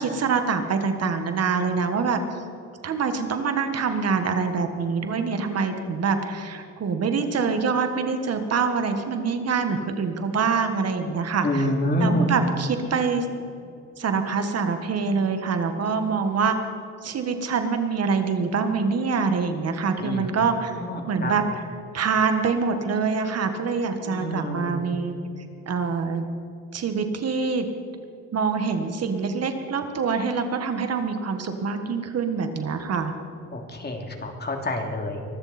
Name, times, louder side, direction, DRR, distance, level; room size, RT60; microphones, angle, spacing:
voice 1, 0.0-2.2 2.8-11.7 12.0-13.3 14.0-16.6 17.0-20.7 21.1-21.7 21.9-25.1 25.7-26.3 26.7-27.7 28.3-33.1, right 5 dB, 55° right, 7 dB, 1.6 m, -25 dB
voice 2, 11.4-12.2 20.0-20.2 21.2-21.3 24.1-24.8 33.5-35.2, left 1 dB, 35° left, 2 dB, 3.0 m, -26 dB
23.5 x 13.5 x 4.4 m, 2.6 s
cardioid pair, 90°, 30 cm